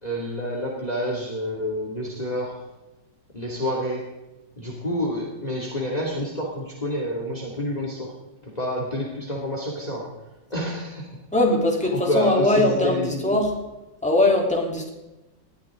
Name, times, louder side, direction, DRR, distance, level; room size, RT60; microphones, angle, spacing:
voice 1, 0.0-2.6 3.3-4.1 4.6-8.1 8.4-10.2 10.5-11.2 11.9-13.2, equal, 20° left, -1 dB, 2.6 m, -28 dB
voice 2, 11.3-13.5 14.0-14.9, left 2 dB, 5° left, -1 dB, 3.2 m, -21 dB
20.0 x 14.0 x 3.8 m, 1.0 s
omnidirectional pair, 2.1 m